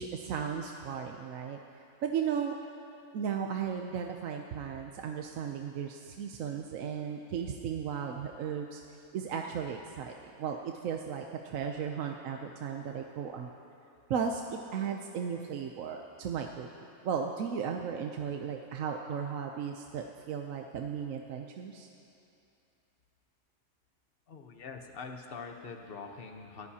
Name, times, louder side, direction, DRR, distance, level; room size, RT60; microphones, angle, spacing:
voice 1, 0.0-1.6 2.0-2.6 3.1-8.8 9.1-13.5 14.1-16.7 17.0-21.9, right 7 dB, 65° right, 3 dB, 1.0 m, -35 dB
voice 2, 24.3-26.7, left 4 dB, 40° left, 4 dB, 1.0 m, -44 dB
24.0 x 14.5 x 2.8 m, 2.7 s
omnidirectional pair, 1.7 m